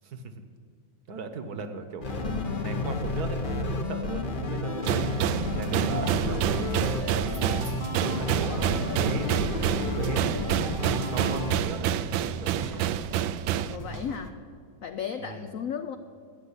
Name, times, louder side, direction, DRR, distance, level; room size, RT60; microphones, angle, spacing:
voice 1, 0.0-0.4 1.1-5.2 5.6-6.5 7.9-10.6 11.1-12.9 13.8-14.1 15.2-15.6, right 4 dB, 60° right, 8 dB, 1.4 m, -38 dB
sound 1, 2.0-11.6, left 2 dB, 35° left, 0.9 m, -31 dB
sound 2, 4.8-13.8, right 10 dB, 85° right, 1.3 m, -28 dB
sound 3, 5.9-14.3, right 2 dB, 25° right, 0.4 m, -40 dB
voice 2, 13.7-14.4 14.8-16.0, left 7 dB, 75° left, 9 dB, 0.7 m, -35 dB
13.5 x 9.4 x 9.7 m, 2.3 s
omnidirectional pair, 2.1 m